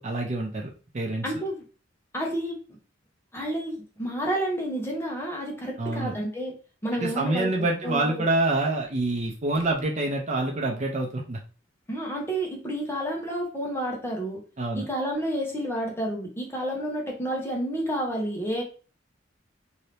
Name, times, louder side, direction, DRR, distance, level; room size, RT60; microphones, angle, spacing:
voice 1, 0.0-1.3 5.8-6.1 7.0-11.4 14.6-14.9, right 2 dB, 40° right, 1 dB, 0.6 m, -27 dB
voice 2, 1.2-1.6 2.1-2.6 3.3-6.6 6.8-8.2 11.9-14.4 14.7-18.6, right 1 dB, 15° left, -2 dB, 0.9 m, -30 dB
2.8 x 2.7 x 3.2 m, 0.36 s
head